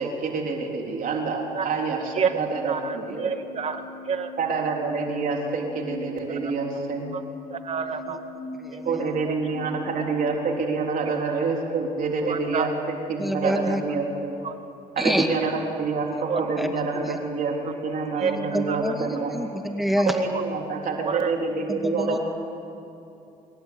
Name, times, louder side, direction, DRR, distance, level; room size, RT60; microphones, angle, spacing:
voice 1, 0.0-3.3 4.4-7.1 8.8-14.4 15.0-19.3 20.0-22.2, right 4 dB, 60° right, 1 dB, 3.7 m, -27 dB
sound 1, 0.5-10.2, left 3 dB, 60° left, 4.2 m, -41 dB
voice 2, 2.7-3.0 3.2-4.3 7.1-7.2 7.5-8.2 8.7-8.8 12.2-12.7 13.4-13.7 14.4-14.6 15.3-15.5 16.3-16.4 18.2-18.9 20.0-20.1 21.1-21.3, right 6 dB, 45° right, 7 dB, 2.2 m, -29 dB
voice 3, 13.2-13.8 15.0-15.3 16.6-16.7 17.0-17.2 18.5-19.1 19.3-20.1 21.8-22.2, equal, ahead, 4 dB, 2.1 m, -26 dB
27.0 x 22.5 x 9.6 m, 2.8 s
cardioid pair, 120°, 16 cm